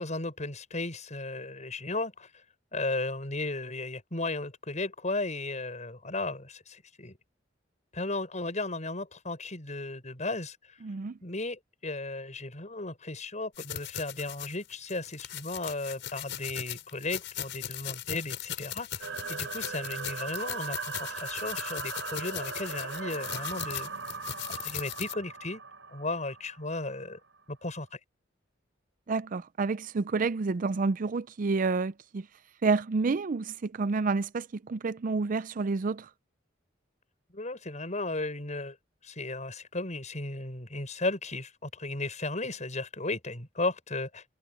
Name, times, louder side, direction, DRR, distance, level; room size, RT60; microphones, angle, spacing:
voice 1, 0.0-2.3 2.7-7.2 7.9-10.8 11.2-23.9 24.6-25.6 25.9-27.2 27.5-28.0 37.3-38.8 39.0-44.2, left 2 dB, 40° left, 6.9 m, -35 dB
voice 2, 10.8-11.1 29.1-32.2 32.6-36.0, right 4 dB, 45° right, 0.4 m, -29 dB
sound 1, 13.6-25.1, left 10 dB, 70° left, 7.4 m, -39 dB
sound 2, 19.0-27.0, right 5 dB, 80° right, 5.2 m, -39 dB
head